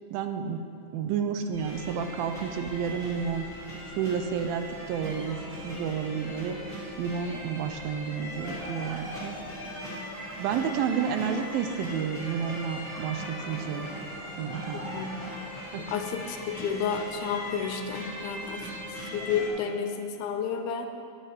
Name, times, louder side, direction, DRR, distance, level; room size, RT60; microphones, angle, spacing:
voice 1, 0.1-0.6 0.9-3.5 4.0-9.4 10.4-13.9 14.4-15.1 15.7-15.8, right 7 dB, 80° right, 7 dB, 2.3 m, -31 dB
sound 1, 1.5-19.5, equal, 10° right, 2.3 m, -39 dB
voice 2, 15.9-18.7 19.1-20.9, left 6 dB, 85° left, 6 dB, 2.5 m, -31 dB
11.0 x 8.0 x 4.6 m, 2.5 s
omnidirectional pair, 4.4 m